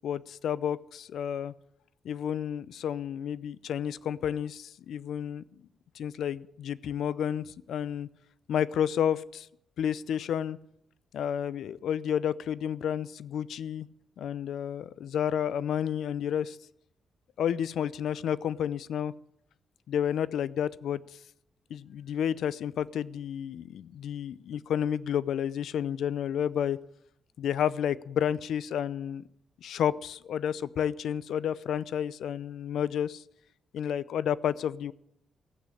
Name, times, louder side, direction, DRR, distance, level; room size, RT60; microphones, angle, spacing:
voice 1, 0.0-1.5 2.0-5.4 5.9-8.1 8.5-9.5 9.8-10.6 11.1-13.9 14.2-16.6 17.4-19.1 19.9-21.2 21.7-26.8 27.4-29.2 29.6-33.2 33.7-34.9, left 9 dB, 85° left, 18 dB, 0.6 m, -31 dB
15.5 x 8.4 x 9.9 m, 0.78 s
cardioid pair, 105°, 0 cm